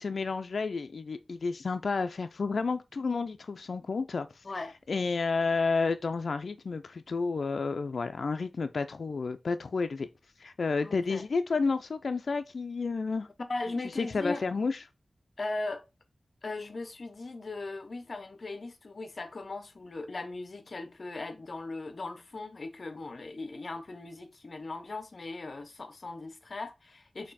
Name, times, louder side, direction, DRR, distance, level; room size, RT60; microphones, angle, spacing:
voice 1, 0.0-4.3 4.9-10.1 10.4-13.3 14.0-14.8, left 4 dB, 75° left, 0.3 m, -31 dB
voice 2, 4.4-4.8 10.8-11.2 13.5-14.4 15.4-15.8 16.4-27.3, left 3 dB, 60° left, 0.7 m, -38 dB
4.2 x 3.2 x 4.0 m
wide cardioid pair, 65°, 0 cm